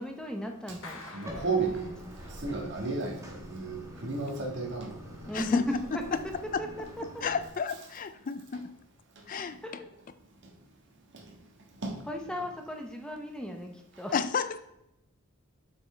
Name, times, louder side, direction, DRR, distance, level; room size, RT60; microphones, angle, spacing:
voice 1, 0.0-1.5 5.3-5.6 6.6-6.7 9.6-9.9 12.1-14.2, equal, 5° left, 3 dB, 0.7 m, -37 dB
Clapping, 0.8-2.6, left 3 dB, 75° left, 1.2 m, -48 dB
voice 2, 1.1-2.0 2.3-5.3 11.1-11.2 11.8-12.1, right 4 dB, 60° right, 0 dB, 1.5 m, -33 dB
Bathtub (filling or washing), 1.2-7.5, equal, 15° right, 1.1 m, -46 dB
voice 3, 5.3-5.7 7.2-8.7 9.3-9.8 14.1-14.6, left 6 dB, 40° left, 12 dB, 0.4 m, -31 dB
7.1 x 5.8 x 3.3 m, 0.85 s
head